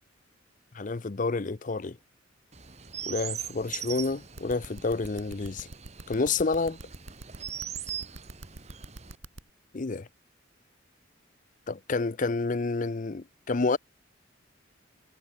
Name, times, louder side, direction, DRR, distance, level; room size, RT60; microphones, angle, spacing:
voice 1, 0.7-2.0 3.1-5.7 6.1-6.8 9.7-10.1 11.7-13.8, left 3 dB, 40° left, 0.6 m, -29 dB
Chirp tweet, 2.5-9.2, right 9 dB, 35° right, 1.5 m, -41 dB
sound 1, 4.4-9.4, right 2 dB, 80° right, 2.6 m, -44 dB
head